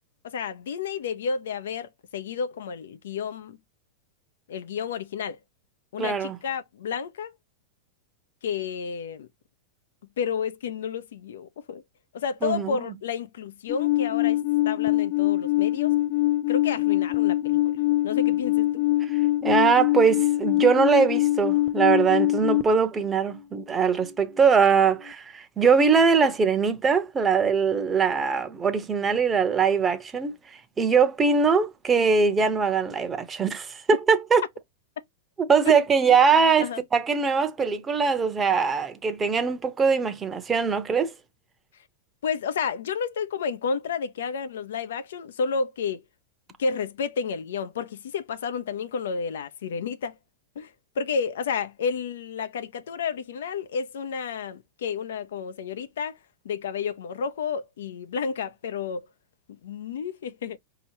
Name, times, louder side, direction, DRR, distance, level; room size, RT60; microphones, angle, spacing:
voice 1, 0.2-3.6 4.5-5.4 5.9-7.3 8.4-9.3 10.2-11.8 12.1-15.9 16.5-17.6 18.0-18.8 36.0-36.2 36.6-36.8 42.2-46.0 46.6-50.1 50.6-50.7 51.0-56.2 56.4-59.1 59.5-60.6, left 6 dB, 85° left, 0.7 m, -31 dB
voice 2, 6.0-6.4 12.4-12.9 19.0-34.4 35.4-41.1, right 5 dB, 15° right, 0.9 m, -22 dB
Alarm, 13.7-22.6, left 16 dB, 35° left, 0.5 m, -23 dB
5.4 x 2.9 x 2.8 m
supercardioid pair, 140°, 0 cm